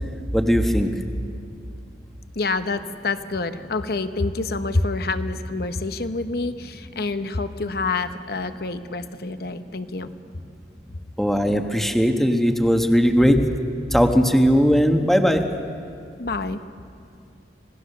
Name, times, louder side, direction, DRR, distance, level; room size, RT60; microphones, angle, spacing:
voice 1, 0.3-0.9 11.2-13.4 13.9-15.4, equal, ahead, 4 dB, 1.2 m, -18 dB
voice 2, 2.3-10.1 16.2-16.6, left 3 dB, 60° left, 10 dB, 0.9 m, -27 dB
26.0 x 18.0 x 6.7 m, 2.4 s
head